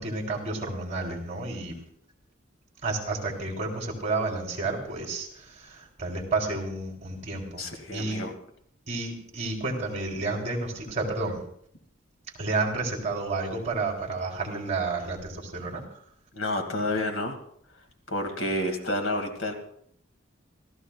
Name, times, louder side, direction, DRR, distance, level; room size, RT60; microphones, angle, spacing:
voice 1, 0.0-1.8 2.8-7.6 7.9-8.2 8.9-11.4 12.4-15.8, right 3 dB, 35° right, 0 dB, 3.3 m, -31 dB
voice 2, 7.6-8.3 16.3-17.4 18.1-19.5, left 1 dB, 75° left, 5 dB, 2.2 m, -29 dB
27.5 x 14.5 x 2.4 m, 0.65 s
head